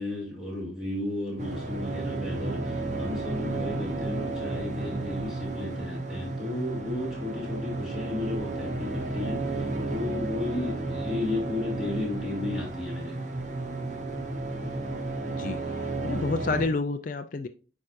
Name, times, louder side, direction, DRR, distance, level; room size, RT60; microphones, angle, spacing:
voice 1, 0.0-13.2, left 2 dB, 5° right, -5 dB, 2.9 m, -34 dB
sound 1, 1.4-16.7, right 2 dB, 40° right, 0.8 m, -32 dB
voice 2, 16.0-17.5, left 3 dB, 45° left, 8 dB, 0.4 m, -29 dB
8.9 x 4.8 x 2.6 m, 0.37 s
head